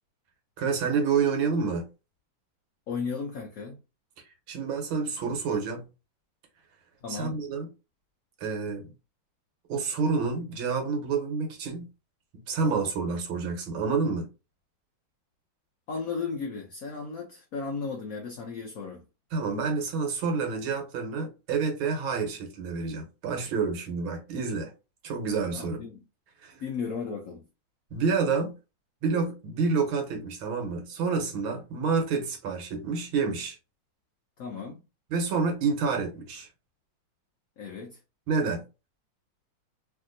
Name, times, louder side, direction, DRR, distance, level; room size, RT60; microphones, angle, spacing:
voice 1, 0.6-1.9 4.5-5.9 7.1-7.7 8.4-8.8 9.7-11.9 12.5-14.3 19.3-24.7 25.0-25.8 26.4-26.6 27.9-28.6 29.0-33.6 35.1-36.5 38.3-38.7, right 5 dB, 80° right, 1.7 m, -28 dB
voice 2, 2.9-3.8 7.0-7.3 15.9-19.0 25.5-26.0 26.6-27.4 34.4-34.8 37.6-38.0, left 5 dB, 80° left, 0.8 m, -35 dB
3.4 x 2.6 x 2.5 m
omnidirectional pair, 2.2 m